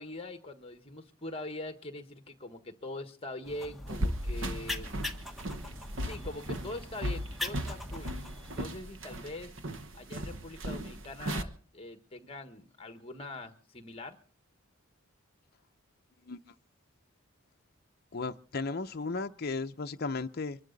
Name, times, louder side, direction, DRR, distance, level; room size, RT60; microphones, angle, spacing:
voice 1, 0.0-5.0 6.0-8.1 8.5-9.5 9.9-14.2, left 2 dB, 25° left, 1.4 m, -43 dB
sound 1, 3.4-8.7, left 2 dB, ahead, 1.4 m, -42 dB
sound 2, 3.9-11.4, equal, 65° right, 1.2 m, -37 dB
voice 2, 18.1-20.6, left 3 dB, 45° left, 0.6 m, -35 dB
24.0 x 12.5 x 4.0 m
head